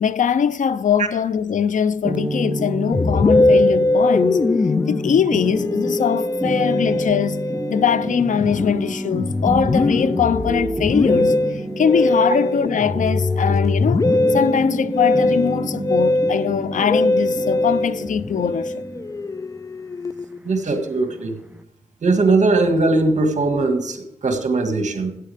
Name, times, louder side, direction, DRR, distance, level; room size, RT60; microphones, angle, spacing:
voice 1, 0.0-4.5 4.9-18.8, left 7 dB, 85° left, 0.5 m, -21 dB
sound 1, 2.0-21.6, right 1 dB, 10° right, 0.7 m, -29 dB
Musical instrument, 2.9-20.5, left 2 dB, 25° left, 0.3 m, -21 dB
voice 2, 20.5-21.4 22.0-25.1, right 3 dB, 70° right, 1.8 m, -19 dB
15.0 x 8.4 x 3.5 m
wide cardioid pair, 105°, 13 cm